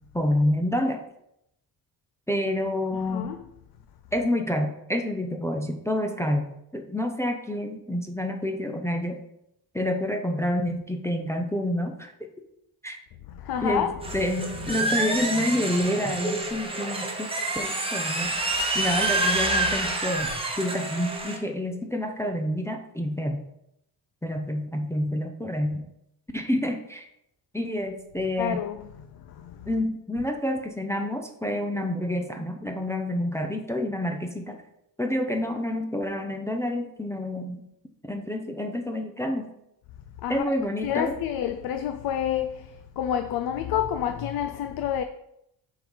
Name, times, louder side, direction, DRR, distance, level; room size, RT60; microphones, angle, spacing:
voice 1, 0.1-1.0 2.3-3.3 4.1-9.2 9.7-12.1 12.8-13.0 13.6-13.9 14.1-18.3 18.7-20.3 20.6-23.4 24.2-25.8 26.3-27.1 27.5-28.6 29.7-34.6 35.0-37.6 38.0-39.5 40.3-41.2, left 1 dB, 5° left, 0.5 m, -28 dB
voice 2, 2.9-3.4 13.3-13.9 28.4-29.7 40.2-40.4 40.8-45.0, left 9 dB, 60° left, 0.5 m, -29 dB
sound 1, 14.0-21.4, right 2 dB, 15° right, 0.9 m, -28 dB
7.5 x 3.8 x 5.5 m
cardioid pair, 160°, 43 cm